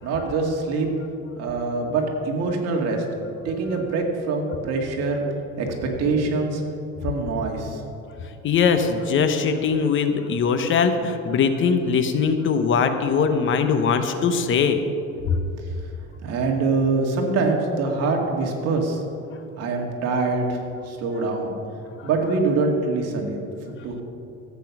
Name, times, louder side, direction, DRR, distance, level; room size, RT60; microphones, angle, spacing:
voice 1, 0.0-0.9 1.4-3.0 3.4-5.2 5.6-6.6 7.0-7.8 16.2-19.0 19.6-20.6 20.9-21.5 22.0-23.4 23.8-24.0, right 3 dB, 55° right, 1 dB, 2.1 m, -24 dB
voice 2, 8.4-14.8 15.3-15.4 22.0-22.1, left 6 dB, 40° left, 8 dB, 0.9 m, -21 dB
14.0 x 8.5 x 6.0 m, 2.7 s
cardioid pair, 145°, 30 cm